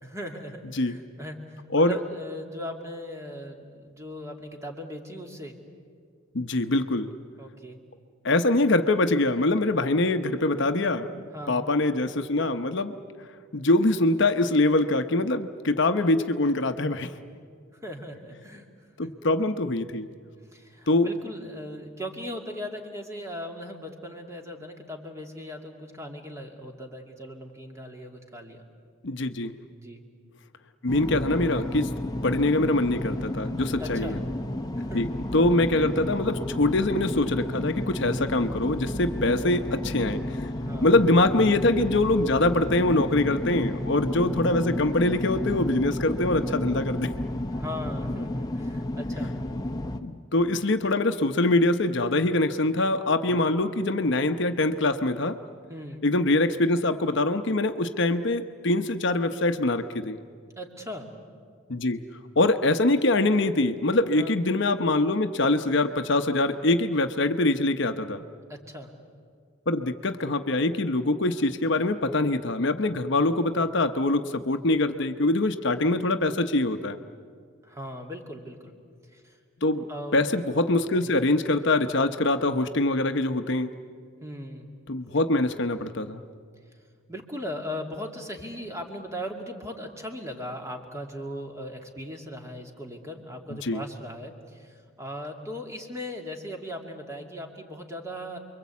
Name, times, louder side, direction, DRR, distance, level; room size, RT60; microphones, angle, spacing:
voice 1, 0.0-5.6 7.4-7.8 11.3-11.7 17.7-18.6 19.0-19.1 20.5-28.7 29.7-30.0 33.8-34.2 34.8-35.0 40.6-41.0 45.8-46.0 47.5-49.3 53.3-53.5 55.7-56.0 60.6-61.1 64.1-64.4 68.5-68.9 77.6-78.7 79.1-79.4 79.9-80.2 81.0-81.2 84.2-84.7 87.1-98.4, equal, 15° right, 2 dB, 2.4 m, -38 dB
voice 2, 6.3-7.1 8.2-12.9 13.5-17.1 19.0-20.1 20.9-21.1 29.0-29.5 30.8-31.9 32.2-34.2 34.9-40.5 40.8-47.1 50.0-55.4 56.0-60.2 61.7-62.0 62.4-68.2 69.7-77.0 79.6-79.8 80.1-83.7 84.9-86.2 93.5-93.8, left 2 dB, 60° left, 8 dB, 0.9 m, -24 dB
sound 1, 30.9-50.0, left 1 dB, 20° left, 1.0 m, -32 dB
29.0 x 23.0 x 8.4 m, 2.1 s
head